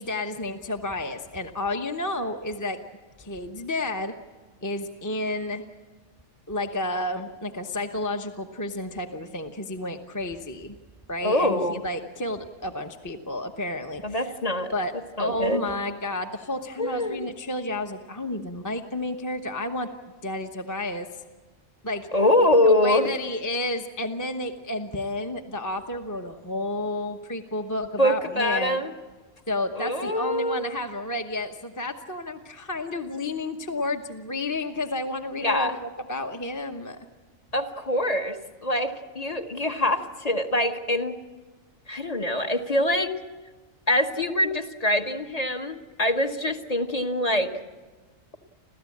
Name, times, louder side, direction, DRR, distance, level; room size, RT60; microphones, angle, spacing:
voice 1, 0.0-2.8 3.2-4.1 4.6-5.6 6.5-10.8 11.1-14.3 14.7-14.9 15.2-19.9 20.2-21.1 21.8-22.1 22.6-28.9 29.5-37.0, left 1 dB, 15° left, 4 dB, 0.9 m, -31 dB
voice 2, 11.2-11.8 14.0-14.7 15.2-15.7 16.8-17.2 22.1-23.1 28.0-28.9 29.7-30.6 35.4-35.8 37.5-41.2 41.9-43.1 43.9-47.5, left 1 dB, 30° left, 4 dB, 1.3 m, -24 dB
30.0 x 13.0 x 8.5 m, 1.3 s
omnidirectional pair, 1.3 m